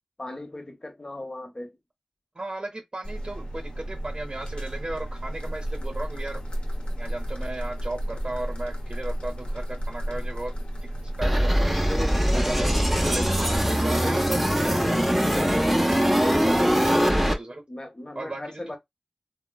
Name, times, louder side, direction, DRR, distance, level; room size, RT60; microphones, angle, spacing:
voice 1, 0.2-1.8 11.9-13.3 14.7-14.9 15.3-15.7 16.1-17.1 17.7-18.8, left 1 dB, 35° left, 0.8 m, -36 dB
voice 2, 2.3-6.4 6.9-10.5 11.2-11.7 12.3-15.3 15.7-17.6 18.1-18.8, right 2 dB, 45° right, 0.7 m, -35 dB
sound 1, 3.0-13.6, right 1 dB, 60° left, 0.9 m, -33 dB
sound 2, 11.2-17.3, equal, ahead, 0.6 m, -22 dB
3.6 x 2.0 x 2.2 m
wide cardioid pair, 50°, 2 cm